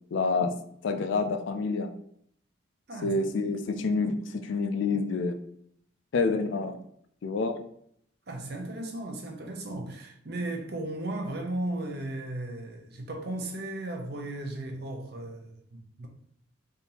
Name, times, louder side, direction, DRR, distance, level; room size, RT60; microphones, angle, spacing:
voice 1, 0.1-0.5 0.8-1.9 3.0-4.2 4.4-5.4 6.1-6.8 7.2-7.6, left 4 dB, 75° left, 0.4 m, -27 dB
voice 2, 8.3-16.1, right 1 dB, 55° right, 0.6 m, -36 dB
3.4 x 2.6 x 2.8 m
head